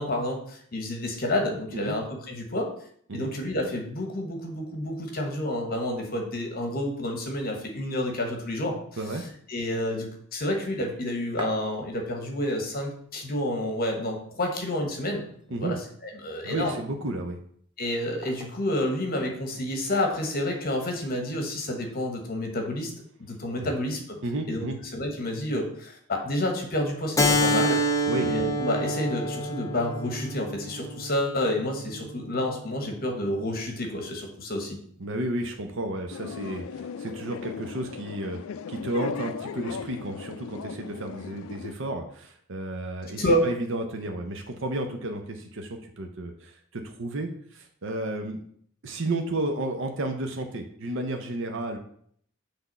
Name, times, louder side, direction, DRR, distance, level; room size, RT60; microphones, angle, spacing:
voice 1, 0.0-2.7 3.1-8.8 9.5-16.7 17.8-22.9 23.3-24.0 24.5-24.6 24.9-27.8 28.2-34.8 43.1-43.5, left 1 dB, 45° left, 2 dB, 1.2 m, -29 dB
sound 1, 11.2-12.4 12.7-12.8 13.0-13.8 14.3-14.4 14.9-15.7 16.4-17.0 18.2-18.8 19.9-20.4, right 2 dB, 25° right, 0.6 m, -43 dB
voice 2, 16.4-17.4 23.6-23.7 24.2-24.8 28.1-28.3 35.0-38.4 38.7-48.4 48.8-51.8, right 2 dB, 65° right, 5 dB, 0.7 m, -32 dB
Keyboard (musical), 27.2-32.3, equal, 15° left, 0.6 m, -27 dB
sound 2, 36.1-41.7, left 6 dB, 85° left, 0.4 m, -37 dB
6.0 x 3.5 x 5.3 m, 0.62 s
head